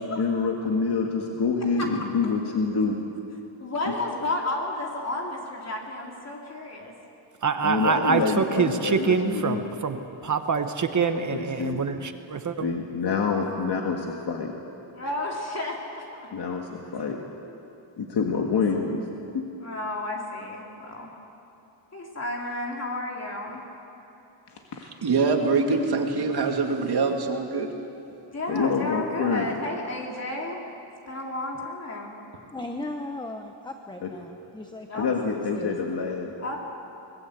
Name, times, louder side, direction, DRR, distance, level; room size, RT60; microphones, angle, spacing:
voice 1, 0.0-3.0 3.9-4.0 7.6-9.7 11.3-11.8 12.6-14.5 16.3-17.2 18.0-19.0 19.3-19.4 24.5-24.9 28.5-29.5 34.0-34.1 35.0-36.3, left 5 dB, 60° left, 1 dB, 1.9 m, -27 dB
voice 2, 3.6-6.9 15.0-16.3 18.8-18.9 19.6-21.1 21.9-23.6 28.3-30.6 31.1-32.2 34.9-35.2 36.4-36.6, left 2 dB, 35° left, -1 dB, 3.3 m, -32 dB
voice 3, 7.4-10.0 10.2-12.7, right 5 dB, 40° right, 7 dB, 1.1 m, -25 dB
voice 4, 25.0-27.7, right 4 dB, 55° right, 2 dB, 2.5 m, -24 dB
voice 5, 32.5-35.8, left 2 dB, 10° left, 5 dB, 0.9 m, -37 dB
26.0 x 19.5 x 8.1 m, 2.8 s
wide cardioid pair, 170°, 46 cm